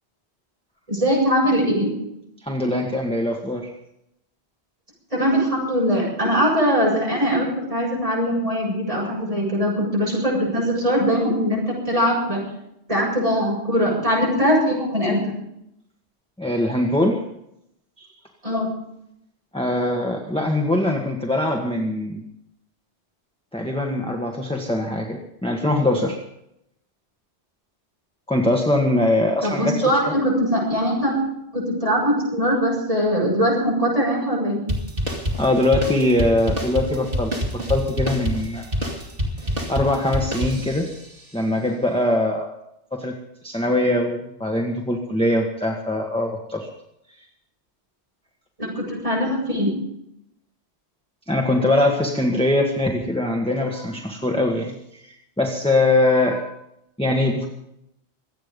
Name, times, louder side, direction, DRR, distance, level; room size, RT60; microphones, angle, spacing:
voice 1, 0.9-1.9 5.1-12.4 12.9-15.3 18.4-18.7 29.4-31.1 31.5-34.6 48.6-49.7, equal, 30° right, -3 dB, 7.5 m, -21 dB
voice 2, 2.4-3.7 16.4-17.2 18.0-18.1 19.5-22.2 23.5-26.2 28.3-29.7 35.4-38.7 39.7-40.9 41.3-42.5 42.9-43.1 43.4-46.7 51.3-56.6 57.0-57.5, left 1 dB, 5° left, 0 dB, 1.5 m, -22 dB
sound 1, 34.7-41.1, equal, 55° right, 2.7 m, -27 dB
25.0 x 9.0 x 5.4 m, 0.80 s
omnidirectional pair, 1.1 m